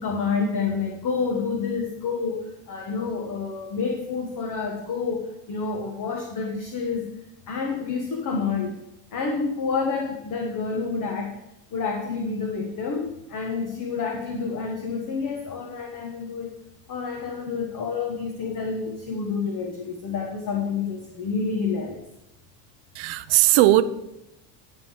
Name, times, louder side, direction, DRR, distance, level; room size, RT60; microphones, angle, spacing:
voice 1, 0.0-7.1 7.5-8.8 9.1-11.4 11.7-16.5 16.9-22.0, left 5 dB, 40° left, 1 dB, 1.4 m, -28 dB
voice 2, 22.9-23.8, right 16 dB, 70° right, 12 dB, 0.8 m, -18 dB
11.5 x 3.8 x 7.2 m, 0.87 s
supercardioid pair, 115°, 50 cm